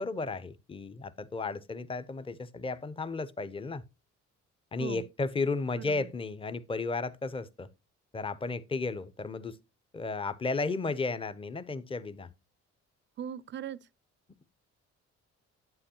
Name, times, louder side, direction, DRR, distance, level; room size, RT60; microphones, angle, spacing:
voice 1, 0.0-3.8 4.7-7.7 8.1-9.6 9.9-12.3, left 3 dB, 20° left, 0.6 m, -34 dB
voice 2, 5.7-6.1 13.2-13.8, right 9 dB, 40° right, 0.4 m, -39 dB
8.4 x 7.7 x 2.8 m
cardioid pair, 90°, 30 cm